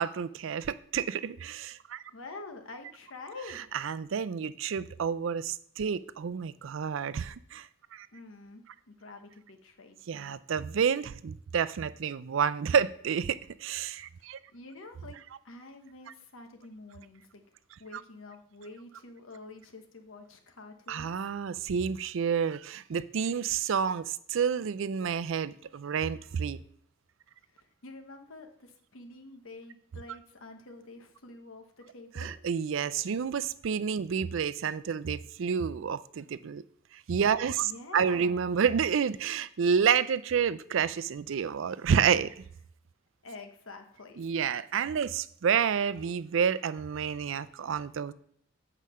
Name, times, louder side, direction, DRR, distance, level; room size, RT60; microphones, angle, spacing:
voice 1, 0.0-2.0 3.7-8.1 10.1-14.4 20.9-26.6 32.2-36.6 36.9-42.3 44.2-48.1, right 7 dB, 70° right, 14 dB, 0.4 m, -29 dB
voice 2, 2.1-3.7 8.1-10.3 14.3-17.4 17.8-21.1 27.5-32.3 37.6-38.4 43.2-44.3, left 3 dB, 85° left, 5 dB, 1.2 m, -47 dB
8.3 x 4.9 x 5.6 m, 0.63 s
head